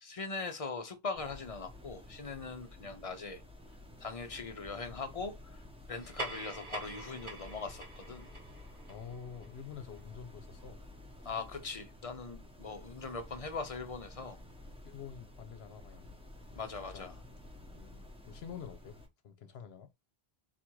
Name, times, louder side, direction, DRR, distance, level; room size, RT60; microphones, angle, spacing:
voice 1, 0.0-3.4 4.0-5.4 5.9-8.3 11.2-14.4 16.6-17.1, left 4 dB, 40° left, 0.6 m, -41 dB
sound 1, 1.1-19.1, left 1 dB, 5° right, 0.8 m, -52 dB
sound 2, 5.9-10.8, right 2 dB, 55° right, 1.8 m, -46 dB
voice 2, 8.9-10.8 14.8-16.2 16.6-17.1 17.7-19.9, left 7 dB, 75° left, 0.9 m, -48 dB
4.1 x 2.5 x 4.5 m
omnidirectional pair, 1.1 m